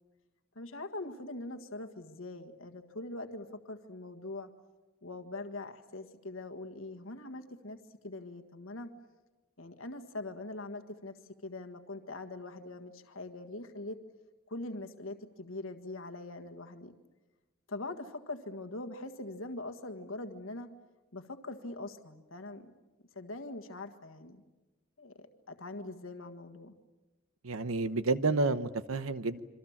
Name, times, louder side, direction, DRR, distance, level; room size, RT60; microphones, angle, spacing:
voice 1, 0.5-4.5 5.0-7.8 8.0-8.9 9.6-11.1 11.4-14.0 14.5-16.9 17.7-20.7 21.1-22.6 23.1-24.4 25.0-26.7, left 2 dB, 70° left, 6 dB, 1.7 m, -42 dB
voice 2, 27.4-29.4, right 3 dB, 80° right, 13 dB, 1.0 m, -30 dB
27.0 x 24.5 x 7.3 m, 1.2 s
head